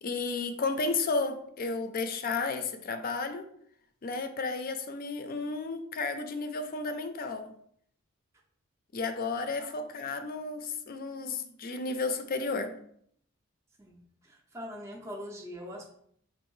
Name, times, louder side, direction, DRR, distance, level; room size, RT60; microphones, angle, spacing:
voice 1, 0.0-3.4 4.0-7.5 8.9-12.7, left 3 dB, 45° left, 9 dB, 0.4 m, -33 dB
voice 2, 14.2-16.0, equal, 15° right, 0 dB, 0.5 m, -42 dB
5.4 x 2.5 x 3.1 m, 0.66 s
head